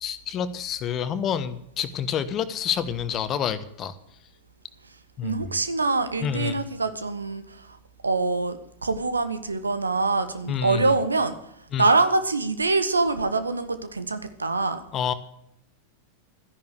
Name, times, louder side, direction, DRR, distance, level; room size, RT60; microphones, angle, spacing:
voice 1, 0.0-3.9 5.2-5.4 6.2-6.6 10.5-10.9 11.7-11.8 14.9-15.1, left 8 dB, 30° left, 12 dB, 1.2 m, -28 dB
voice 2, 5.2-7.8 8.0-11.4 11.8-14.8, right 3 dB, 75° right, 11 dB, 1.2 m, -24 dB
13.5 x 10.5 x 6.6 m, 0.74 s
figure-of-eight pair, 90°, 0 cm